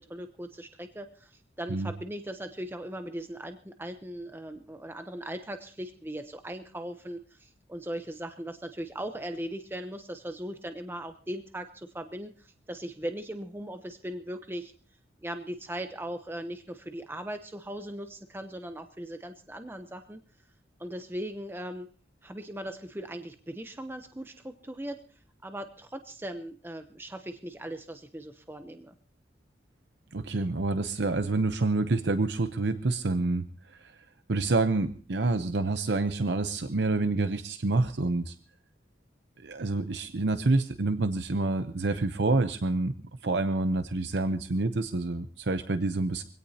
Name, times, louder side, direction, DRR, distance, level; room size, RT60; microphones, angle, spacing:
voice 1, 0.0-14.7 15.2-20.2 20.8-21.9 22.2-25.0 25.4-28.9, right 1 dB, 10° right, 7 dB, 0.8 m, -39 dB
voice 2, 30.1-33.5 34.3-38.3 39.4-42.9 43.2-46.2, right 3 dB, 65° right, 10 dB, 0.7 m, -27 dB
24.0 x 17.0 x 2.8 m, 0.39 s
head